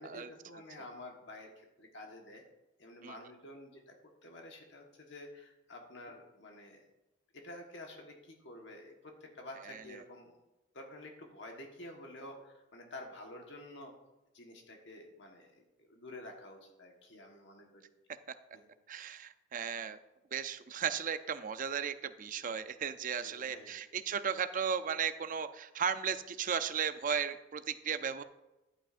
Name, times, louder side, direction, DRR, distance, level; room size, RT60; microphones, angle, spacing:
voice 1, 0.0-2.4 2.8-3.9 4.2-6.9 7.3-10.4 10.7-13.9 14.3-17.8 18.5-18.7 23.1-23.8, left 1 dB, 65° left, 2 dB, 1.4 m, -50 dB
voice 2, 18.9-20.0 20.3-28.2, right 7 dB, 40° right, 11 dB, 0.5 m, -35 dB
11.5 x 8.9 x 2.5 m, 1.0 s
head